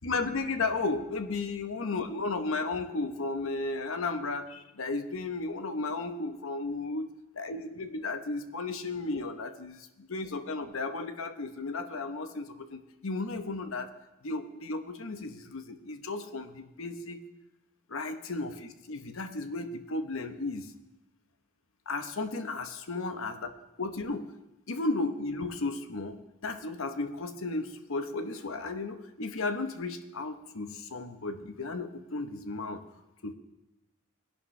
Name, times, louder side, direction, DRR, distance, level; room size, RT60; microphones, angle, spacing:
voice 1, 0.0-7.1 7.4-13.9 14.2-17.2 17.9-20.7 21.9-23.5 23.8-24.3 24.7-26.2 26.4-32.8 33.2-33.3, left 3 dB, 70° left, 8 dB, 0.9 m, -34 dB
20.0 x 11.0 x 3.2 m, 1.0 s
head